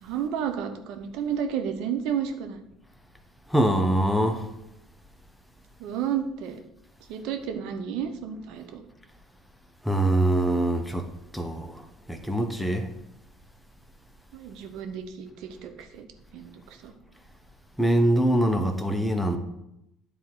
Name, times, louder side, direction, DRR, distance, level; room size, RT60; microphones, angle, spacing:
voice 1, 0.0-2.6 5.8-6.6 7.1-8.8 14.3-16.1 16.3-16.9, right 8 dB, 75° right, 0.9 m, -32 dB
voice 2, 3.5-4.5 9.8-12.9 17.8-19.4, right 1 dB, 5° left, 1.1 m, -24 dB
9.9 x 3.7 x 4.7 m
supercardioid pair, 80°, 0 cm